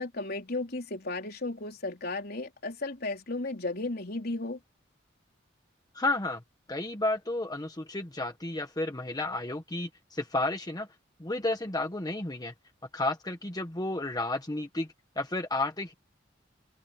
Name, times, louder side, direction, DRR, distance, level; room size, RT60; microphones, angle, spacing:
voice 1, 0.0-4.6, left 2 dB, 55° left, 3.8 m, -34 dB
voice 2, 5.9-6.4 6.7-10.9 11.2-12.5 12.9-14.9 15.2-15.9, left 2 dB, 20° left, 1.2 m, -32 dB
open air
head